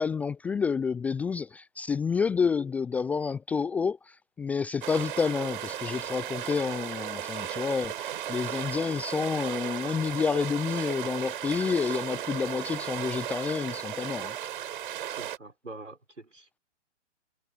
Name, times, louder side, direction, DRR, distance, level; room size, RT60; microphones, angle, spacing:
voice 1, 0.0-14.3, left 5 dB, 5° left, 0.6 m, -29 dB
sound 1, 4.8-15.4, right 11 dB, 45° right, 6.0 m, -35 dB
voice 2, 15.1-16.6, right 2 dB, 80° right, 6.6 m, -45 dB
figure-of-eight pair, 125°, 36 cm